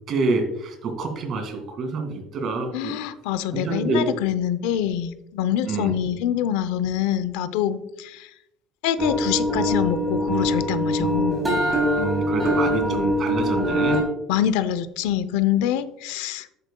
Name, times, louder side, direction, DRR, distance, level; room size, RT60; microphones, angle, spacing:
voice 1, 0.1-3.0 3.5-4.1 5.6-6.0 12.0-14.0, right 3 dB, 45° right, 4 dB, 2.1 m, -27 dB
voice 2, 2.7-8.3 8.8-11.4 14.3-16.5, left 10 dB, 85° left, 14 dB, 0.6 m, -25 dB
sound 1, 9.0-14.0, equal, 10° right, 3.0 m, -23 dB
10.0 x 8.7 x 2.3 m, 0.82 s
cardioid pair, 140°, 0 cm